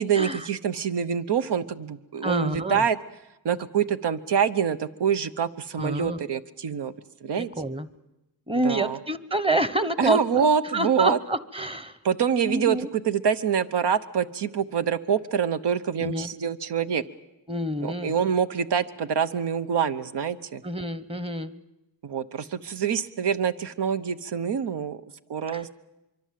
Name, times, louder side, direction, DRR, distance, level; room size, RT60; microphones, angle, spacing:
voice 1, 0.0-3.0 3.4-6.9 7.2-7.5 8.6-9.0 10.0-11.2 12.0-17.0 17.8-20.6 22.0-25.0 25.3-25.7, right 7 dB, 80° right, 11 dB, 1.1 m, -25 dB
voice 2, 2.2-2.8 5.8-6.2 7.4-7.9 8.5-10.5 10.7-11.9 12.4-12.9 16.0-16.3 17.5-18.1 20.6-21.5 25.5-25.7, right 1 dB, 15° right, 13 dB, 1.1 m, -27 dB
24.5 x 24.0 x 7.6 m, 0.96 s
wide cardioid pair, 95°, 40 cm